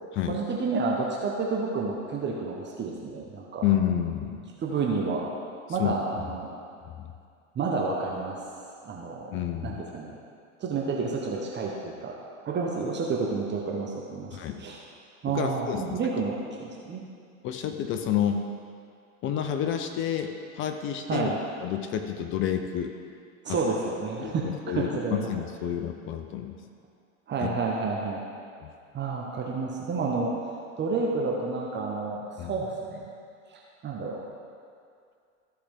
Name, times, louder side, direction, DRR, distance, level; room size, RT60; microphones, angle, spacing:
voice 1, 0.3-3.6 4.6-5.3 5.7-6.5 7.5-8.4 8.8-9.3 9.6-10.2 10.6-12.2 12.4-14.8 15.2-17.0 21.1-21.4 23.4-24.5 24.7-25.3 27.3-28.2 28.9-30.3 30.8-33.0 33.5-34.2, right 4 dB, 25° right, -2 dB, 1.1 m, -30 dB
voice 2, 3.6-4.4 5.8-5.9 7.0-7.1 9.3-9.8 14.3-14.6 15.3-16.0 17.4-18.4 19.2-21.3 21.6-22.9 23.5-23.6 24.2-26.6 27.4-27.5 28.6-28.7 32.4-32.5, left 9 dB, 30° left, 7 dB, 0.5 m, -29 dB
14.5 x 4.9 x 3.5 m, 2.3 s
hypercardioid pair, 105°, 42 cm